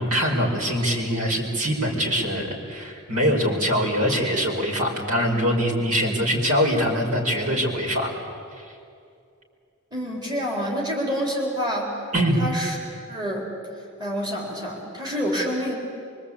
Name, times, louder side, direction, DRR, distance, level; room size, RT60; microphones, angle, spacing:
voice 1, 0.0-8.1 8.6-8.7 12.1-12.4, equal, 90° right, 0 dB, 5.1 m, -23 dB
voice 2, 9.9-12.0 12.4-12.8 13.1-13.5 14.0-15.8, equal, 20° right, -2 dB, 4.1 m, -27 dB
24.0 x 24.0 x 8.7 m, 2.5 s
head